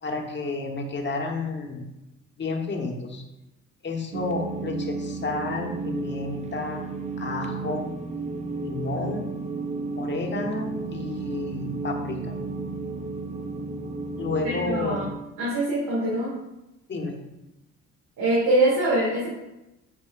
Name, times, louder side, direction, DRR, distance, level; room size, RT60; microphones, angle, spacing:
voice 1, 0.0-1.9 2.4-3.2 3.8-6.8 7.2-7.9 8.6-9.3 9.9-12.4 14.2-15.0 16.9-17.2, left 3 dB, 35° left, 2 dB, 1.2 m, -31 dB
sound 1, 4.1-15.1, right 3 dB, 25° right, 0.4 m, -33 dB
voice 2, 14.4-15.1 15.4-16.4 18.2-19.3, right 1 dB, 75° right, -8 dB, 2.2 m, -23 dB
8.8 x 4.3 x 2.5 m, 0.93 s
cardioid pair, 90°, 30 cm